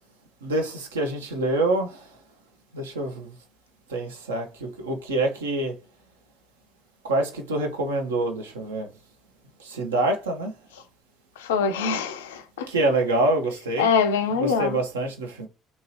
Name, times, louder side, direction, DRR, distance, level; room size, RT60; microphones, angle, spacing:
voice 1, 0.4-2.0 2.7-3.3 3.9-5.8 7.0-8.9 9.6-10.5 12.7-13.9 14.4-15.5, right 2 dB, 75° right, 0.5 m, -26 dB
voice 2, 11.4-12.7 13.8-14.8, left 6 dB, 70° left, 0.4 m, -24 dB
2.8 x 2.7 x 2.8 m
figure-of-eight pair, 50°, 0 cm